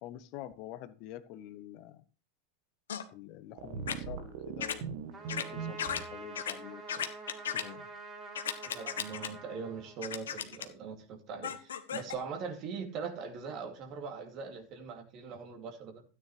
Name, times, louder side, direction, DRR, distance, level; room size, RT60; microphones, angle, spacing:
voice 1, 0.0-2.0 3.1-4.9 5.3-7.1 7.5-7.9, left 13 dB, 50° left, 13 dB, 0.9 m, -47 dB
sound 1, 2.9-3.1 3.9-4.0 4.6-4.8 5.3-5.4 5.8-6.0 6.4-6.5 6.9-7.6 8.4-9.3 10.0-10.7 11.4-12.1, left 8 dB, 75° left, 1.1 m, -35 dB
sound 2, 3.6-6.0, right 7 dB, 60° right, 1.3 m, -40 dB
Trumpet, 5.1-10.4, right 4 dB, 30° right, 3.7 m, -47 dB
voice 2, 8.7-16.0, right 5 dB, 45° right, 4 dB, 2.3 m, -41 dB
13.0 x 9.2 x 3.1 m, 0.36 s
hypercardioid pair, 90°, 0 cm